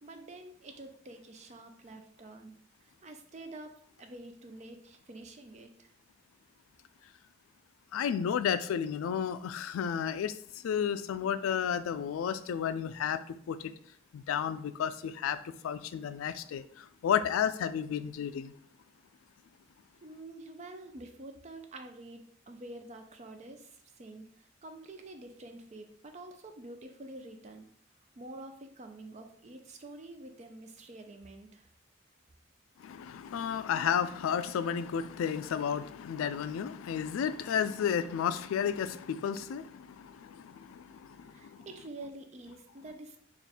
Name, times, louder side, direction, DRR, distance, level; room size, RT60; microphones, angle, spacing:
voice 1, 0.0-2.6 3.0-5.9 20.0-24.3 24.6-27.7 28.2-31.7 41.3-43.2, right 2 dB, 35° right, 0.4 m, -47 dB
voice 2, 7.9-10.4 10.6-13.2 13.5-13.6 14.1-15.4 15.6-16.6 17.0-18.5 32.8-41.0, left 8 dB, 90° left, 0.3 m, -32 dB
3.6 x 2.4 x 4.1 m
head